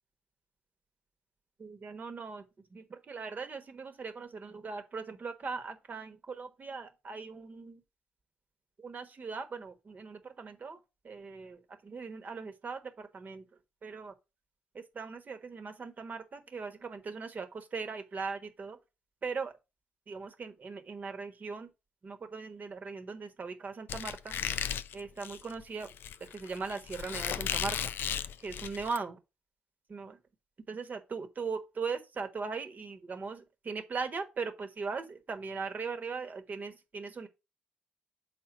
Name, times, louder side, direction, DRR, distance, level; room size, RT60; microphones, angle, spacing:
voice 1, 1.6-2.4 2.7-7.8 8.8-10.8 11.0-13.4 13.8-14.1 14.7-18.8 19.2-19.5 20.1-21.7 22.0-24.4 24.9-25.9 26.3-27.8 28.4-29.2 29.9-30.2 30.7-37.3, right 4 dB, 45° right, 1.3 m, -39 dB
Squeak, 23.9-29.0, left 9 dB, 60° left, 0.4 m, -36 dB
6.1 x 4.1 x 5.0 m
hypercardioid pair, 40°, 4 cm